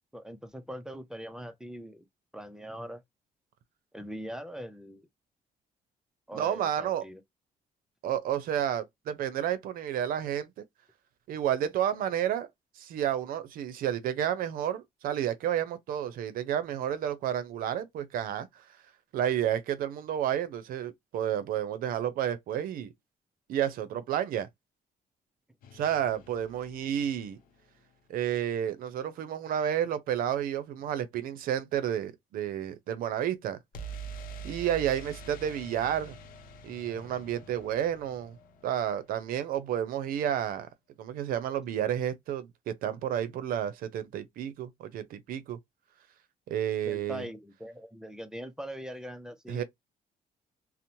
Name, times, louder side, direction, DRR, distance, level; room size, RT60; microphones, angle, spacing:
voice 1, 0.1-2.1 2.3-3.0 3.9-5.1 6.3-7.2 46.9-49.6, equal, 5° right, 0.3 m, -41 dB
voice 2, 6.3-7.0 8.0-10.5 11.3-12.5 12.8-18.5 19.1-22.9 23.5-24.5 25.7-27.4 28.1-33.6 34.4-36.2 36.6-38.4 38.6-40.7 41.0-45.6 46.5-47.3 49.5-49.6, right 10 dB, 75° right, 0.5 m, -31 dB
sound 1, 25.6-27.6 33.7-39.5, right 3 dB, 75° left, 0.6 m, -46 dB
2.9 x 2.0 x 2.6 m
cardioid pair, 150°, 15 cm